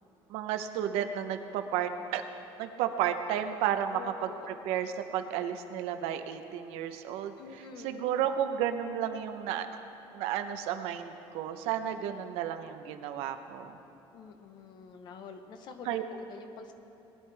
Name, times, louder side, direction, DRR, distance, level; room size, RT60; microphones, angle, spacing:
voice 1, 0.3-2.2 2.6-9.7 10.1-13.8 15.8-16.0, right 9 dB, 85° right, 7 dB, 0.8 m, -32 dB
voice 2, 3.9-4.5 7.4-8.1 14.1-16.7, left 5 dB, 45° left, 7 dB, 0.9 m, -47 dB
19.5 x 10.5 x 3.4 m, 2.9 s
cardioid pair, 165°, 10 cm